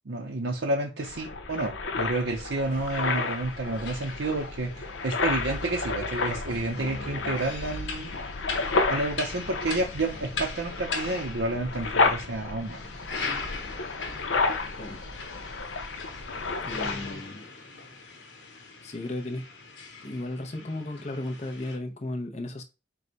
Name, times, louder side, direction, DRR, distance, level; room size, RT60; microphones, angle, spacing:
voice 1, 0.1-8.1 8.9-12.8, right 2 dB, 75° right, 0.7 m, -30 dB
sound 1, 1.0-17.1, left 3 dB, 85° left, 0.7 m, -31 dB
sound 2, 2.6-21.8, left 4 dB, 70° left, 1.1 m, -41 dB
voice 2, 16.6-17.5 18.8-19.4 20.0-22.6, left 1 dB, 35° left, 0.7 m, -35 dB
4.7 x 2.2 x 4.0 m
head